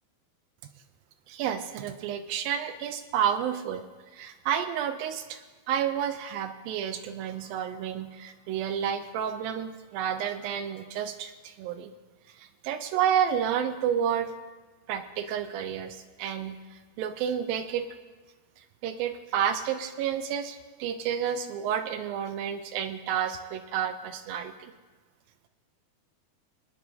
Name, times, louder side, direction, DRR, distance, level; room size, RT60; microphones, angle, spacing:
voice 1, 1.3-3.8 4.1-11.9 12.3-14.3 14.9-17.9 18.6-24.7, right 9 dB, 80° right, 8 dB, 2.1 m, -30 dB
24.5 x 9.6 x 2.7 m, 1.4 s
omnidirectional pair, 4.6 m